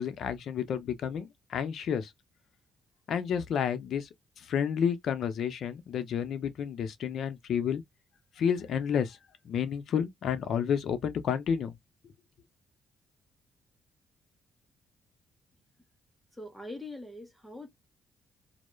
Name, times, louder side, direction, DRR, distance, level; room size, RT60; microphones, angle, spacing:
voice 1, 0.0-2.1 3.1-4.1 4.4-7.8 8.4-9.2 9.4-11.7, left 8 dB, 65° left, 0.5 m, -30 dB
voice 2, 16.3-17.7, left 2 dB, 5° left, 0.7 m, -42 dB
2.2 x 2.1 x 3.0 m
cardioid pair, 90°, 0 cm